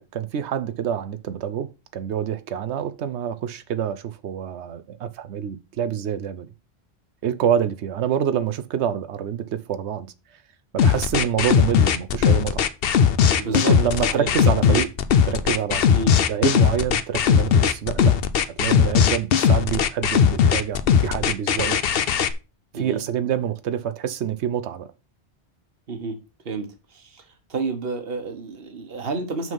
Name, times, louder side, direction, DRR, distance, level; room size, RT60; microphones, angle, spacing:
voice 1, 0.0-6.5 7.2-10.1 10.7-12.7 13.4-14.9 15.2-15.8 16.3-18.2 18.6-21.8 22.7-24.9, right 9 dB, 90° right, 1.0 m, -26 dB
sound 1, 10.8-22.3, left 7 dB, 65° left, 0.9 m, -18 dB
voice 2, 13.4-13.7 14.1-14.3 14.6-14.8 15.9-16.1 22.7-23.0 25.9-26.2 26.4-27.2 27.5-29.5, right 4 dB, 60° right, 1.5 m, -30 dB
6.3 x 5.5 x 5.4 m
omnidirectional pair, 1.1 m